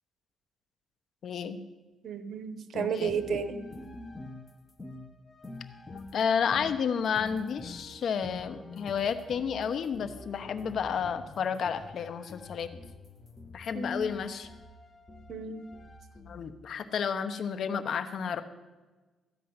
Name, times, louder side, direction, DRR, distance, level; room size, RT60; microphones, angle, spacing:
voice 1, 1.2-1.6 2.7-3.4 6.1-12.7 13.5-14.5 16.3-18.4, left 7 dB, 60° left, 11 dB, 1.0 m, -31 dB
voice 2, 2.0-3.6 13.7-14.0 15.3-15.7, right 6 dB, 55° right, 11 dB, 1.3 m, -32 dB
sound 1, 3.0-16.4, left 2 dB, 25° left, 1.2 m, -47 dB
14.0 x 5.4 x 9.5 m, 1.2 s
cardioid pair, 90°, 0 cm